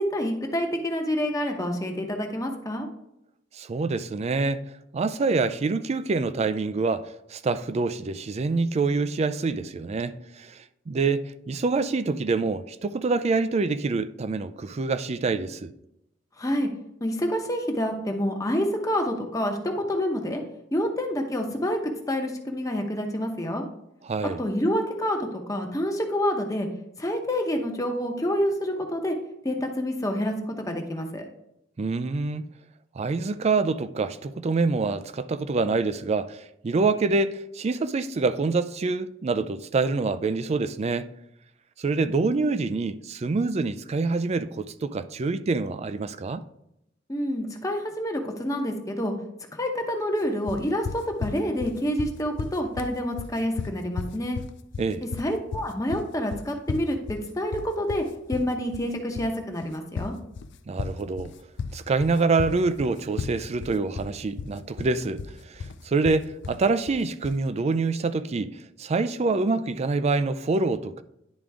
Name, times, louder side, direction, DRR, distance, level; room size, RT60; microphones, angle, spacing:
voice 1, 0.0-2.9 16.4-16.7 17.0-20.4 20.7-21.8 22.1-23.6 24.4-26.7 27.0-29.1 29.4-31.3 47.1-49.1 49.5-54.4 55.2-60.1, equal, 20° left, 0.9 m, -28 dB
voice 2, 3.5-4.6 4.9-15.7 24.0-24.4 31.8-32.4 32.9-41.1 41.8-46.4 54.8-55.0 60.7-61.3 61.7-65.2 65.5-68.5 68.8-71.0, right 3 dB, 35° right, 0.4 m, -26 dB
sound 1, 50.5-67.4, left 5 dB, 65° left, 0.4 m, -35 dB
10.5 x 3.7 x 3.4 m
head